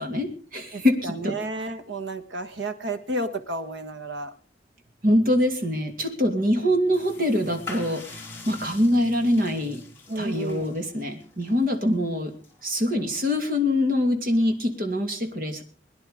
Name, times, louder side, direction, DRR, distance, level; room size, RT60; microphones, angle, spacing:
voice 1, 0.0-1.4 5.0-9.8 10.2-12.3 12.6-15.6, left 1 dB, 50° right, 5 dB, 2.8 m, -24 dB
voice 2, 0.7-4.4 10.1-10.7, right 2 dB, 80° right, 9 dB, 1.6 m, -32 dB
sound 1, 6.9-13.6, left 4 dB, 10° left, 3.2 m, -45 dB
21.5 x 10.5 x 5.0 m, 0.40 s
head